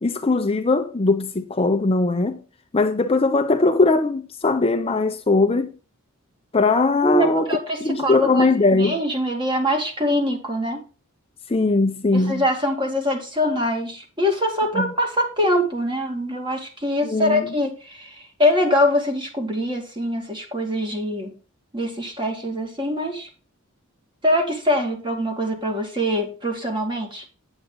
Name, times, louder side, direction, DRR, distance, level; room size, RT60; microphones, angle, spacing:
voice 1, 0.0-2.4 2.7-5.7 6.5-7.5 7.8-9.0 11.5-12.4 14.7-14.9 17.0-17.5, left 3 dB, 30° left, 0.7 m, -20 dB
voice 2, 7.0-10.8 12.1-21.3 21.7-23.3 24.2-27.2, left 1 dB, 25° right, 2.3 m, -23 dB
9.2 x 7.9 x 3.9 m
head